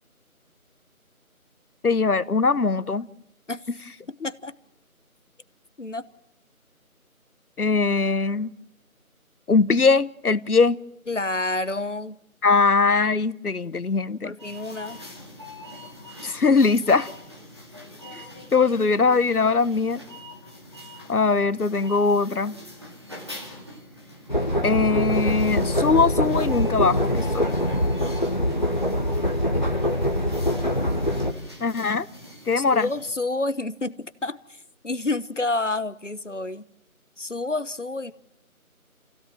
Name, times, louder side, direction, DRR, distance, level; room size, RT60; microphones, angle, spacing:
voice 1, 1.8-3.1 7.6-8.5 9.5-10.8 12.4-14.3 16.2-17.1 18.1-18.2 18.5-20.0 21.1-22.6 24.6-27.5 31.6-32.1 32.5-32.9, left 4 dB, 85° left, 18 dB, 1.0 m, -21 dB
voice 2, 4.1-4.5 5.8-6.1 11.1-12.2 14.2-15.0 32.6-36.7 37.2-38.1, left 2 dB, 55° left, 13 dB, 1.1 m, -29 dB
sound 1, 14.4-33.1, left 1 dB, 20° right, 2.2 m, -43 dB
sound 2, 24.3-31.3, equal, 30° left, 1.5 m, -24 dB
28.5 x 16.5 x 7.4 m, 0.86 s
figure-of-eight pair, 175°, 43 cm